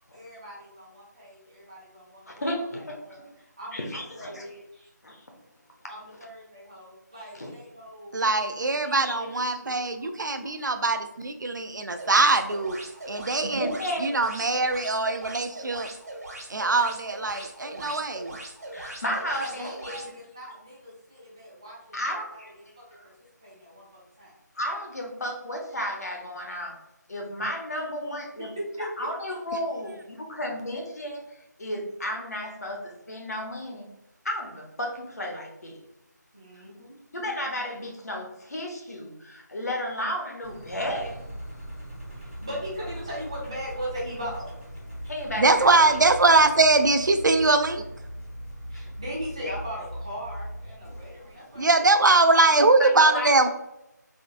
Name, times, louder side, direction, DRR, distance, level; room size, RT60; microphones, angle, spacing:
voice 1, 0.1-4.9 5.9-8.2 8.8-9.3 9.6-9.9 12.8-13.5 18.9-23.1 23.4-23.8 24.2-24.4 28.4-29.4 36.3-37.0 42.1-44.5 48.7-51.7 51.9-52.5, equal, 15° right, -7 dB, 0.7 m, -39 dB
voice 2, 2.3-3.0 3.7-4.4 5.0-5.2 7.4-7.5 9.0-9.1 13.4-14.0 18.7-20.0 21.9-22.5 24.5-26.8 27.1-28.5 28.8-31.2 31.6-33.9 34.2-35.8 37.1-41.2 45.1-46.0 52.8-53.3, equal, 60° left, 1 dB, 1.0 m, -33 dB
voice 3, 8.1-12.8 13.1-13.7 14.0-15.9 16.5-18.4 45.4-47.8 51.6-53.5, right 3 dB, 75° right, 7 dB, 0.5 m, -22 dB
sound 1, 11.9-20.1, right 2 dB, 55° right, 1.2 m, -40 dB
Engine, 40.4-52.1, equal, 5° left, 1.3 m, -40 dB
3.7 x 3.4 x 2.4 m, 0.88 s
figure-of-eight pair, 175°, 10 cm